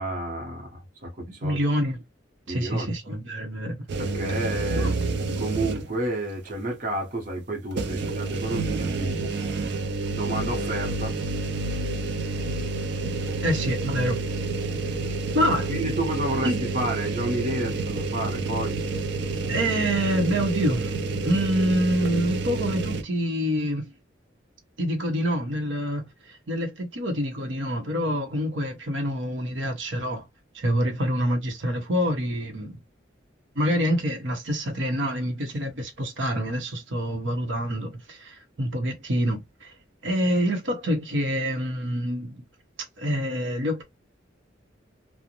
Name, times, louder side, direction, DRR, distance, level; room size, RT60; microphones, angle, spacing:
voice 1, 0.0-1.6 2.5-2.9 4.0-4.9 5.4-9.3 10.1-11.2 13.3-13.5 15.7-18.8, right 1 dB, 45° right, 0.8 m, -30 dB
voice 2, 1.4-2.0 2.5-3.7 4.8-4.9 13.4-14.2 15.3-15.7 16.4-16.6 19.5-23.9 24.8-30.2 30.5-32.8 33.6-39.7 40.0-42.4 43.0-43.8, equal, 80° right, 0.8 m, -26 dB
sound 1, 3.9-6.1 6.5-6.6 7.7-23.0, right 3 dB, 65° right, 0.4 m, -29 dB
2.5 x 2.1 x 2.8 m
head